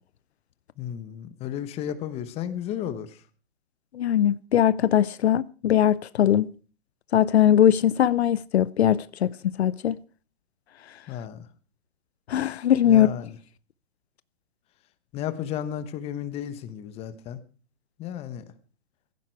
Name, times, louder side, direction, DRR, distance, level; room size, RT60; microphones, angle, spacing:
voice 1, 0.8-3.2 11.1-11.5 12.8-13.4 15.1-17.4 18.0-18.4, left 10 dB, 20° left, 1.2 m, -33 dB
voice 2, 3.9-6.5 7.1-9.3 9.6-10.0 12.3-13.1, left 10 dB, 70° left, 0.7 m, -20 dB
16.5 x 15.0 x 4.7 m
hypercardioid pair, 150°, 33 cm